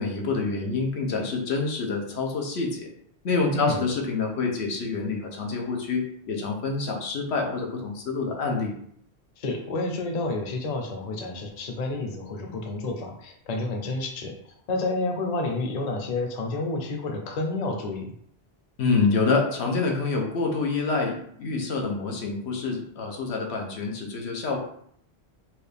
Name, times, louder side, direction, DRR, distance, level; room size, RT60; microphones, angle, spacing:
voice 1, 0.0-2.9 3.2-8.7 18.8-24.6, left 4 dB, 90° left, 1 dB, 1.1 m, -27 dB
voice 2, 9.4-14.3 14.7-18.1, left 2 dB, 45° left, 2 dB, 0.7 m, -30 dB
4.4 x 2.4 x 3.4 m, 0.65 s
omnidirectional pair, 1.1 m